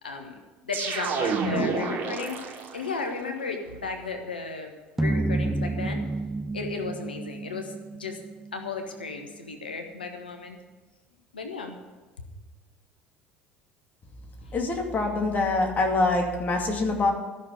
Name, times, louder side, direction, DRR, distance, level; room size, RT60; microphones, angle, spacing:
voice 1, 0.0-2.4 2.7-6.0 6.5-8.2 8.5-10.6 11.3-11.8 12.2-12.3 14.4-14.5, left 4 dB, 85° left, 4 dB, 1.2 m, -35 dB
sound 1, 0.7-3.0, right 4 dB, 45° right, 3.1 m, -29 dB
sound 2, 5.0-9.4, right 2 dB, 5° right, 0.6 m, -30 dB
voice 2, 14.5-17.1, left 2 dB, 35° left, 2 dB, 2.4 m, -25 dB
13.0 x 6.4 x 8.1 m, 1.2 s
figure-of-eight pair, 65°, 5 cm